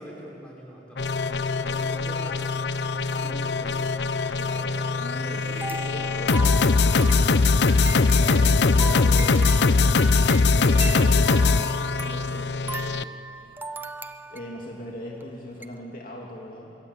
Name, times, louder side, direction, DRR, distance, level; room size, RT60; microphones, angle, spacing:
voice 1, 0.0-2.7 3.1-4.0, equal, 5° left, -2 dB, 5.0 m, -43 dB
sound 1, 1.0-13.0, left 4 dB, 70° left, 0.6 m, -21 dB
voice 2, 4.3-7.3 8.1-13.0 14.3-16.8, left 1 dB, 50° left, -2 dB, 2.9 m, -39 dB
sound 2, 5.6-14.7 15.2-15.3 15.6-15.7, right 2 dB, 10° right, 0.7 m, -37 dB
25.0 x 22.0 x 8.4 m, 2.6 s
head